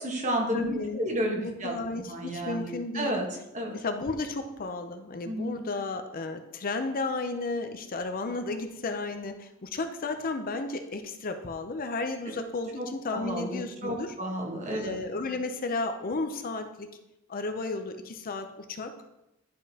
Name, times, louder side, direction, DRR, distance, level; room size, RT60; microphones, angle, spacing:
voice 1, 0.0-1.7 2.1-3.2 3.5-3.7 5.2-5.6 12.8-15.0, equal, 35° right, 0 dB, 1.3 m, -31 dB
voice 2, 0.5-1.0 1.4-3.1 3.7-14.1 14.7-16.9 17.3-18.9, left 3 dB, 45° left, 7 dB, 0.5 m, -33 dB
10.5 x 5.1 x 2.8 m, 0.89 s
head